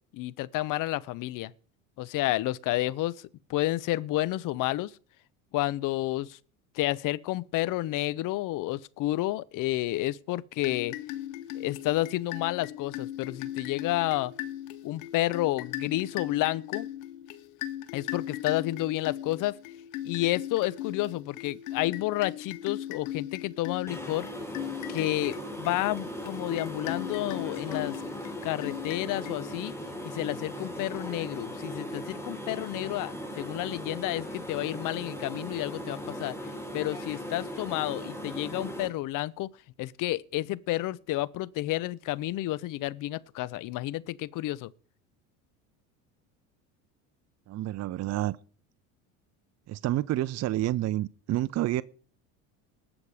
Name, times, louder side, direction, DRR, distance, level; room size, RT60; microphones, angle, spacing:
voice 1, 0.1-1.5 2.0-3.2 3.5-4.9 5.5-6.4 6.7-10.9 11.5-14.3 14.8-16.9 17.9-19.6 20.0-24.3 24.9-28.0 28.4-29.7 30.0-36.3 36.7-39.5 39.8-44.7, left 16 dB, 50° left, 0.8 m, -30 dB
sound 1, 10.6-29.8, left 12 dB, 75° left, 1.2 m, -39 dB
sound 2, 23.9-38.9, equal, 5° left, 3.3 m, -38 dB
voice 2, 47.5-48.4 49.7-51.8, right 15 dB, 40° right, 0.7 m, -29 dB
19.5 x 7.3 x 4.9 m
supercardioid pair, 90°, 39 cm